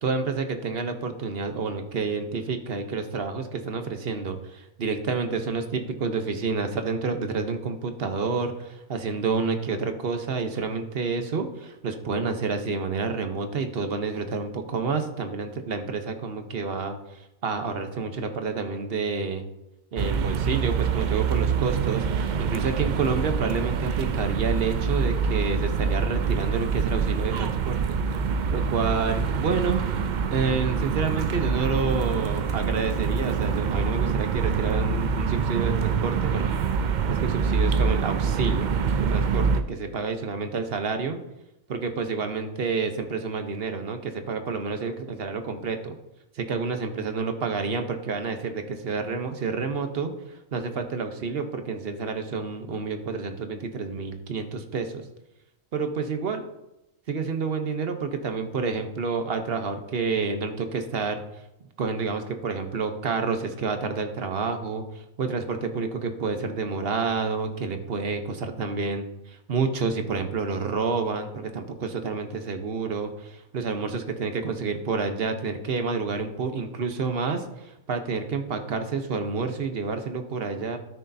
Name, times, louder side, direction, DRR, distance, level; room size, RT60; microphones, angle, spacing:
voice 1, 0.0-19.5 19.9-28.0 28.5-29.8 30.3-36.5 37.1-38.7 39.0-41.2 41.7-46.0 46.3-50.1 50.5-55.0 55.7-56.4 57.1-61.2 61.8-80.8, right 4 dB, 50° right, 7 dB, 1.0 m, -29 dB
sound 1, 20.0-39.6, right 6 dB, 75° right, 0.4 m, -25 dB
13.5 x 6.3 x 2.7 m, 0.89 s
omnidirectional pair, 1.4 m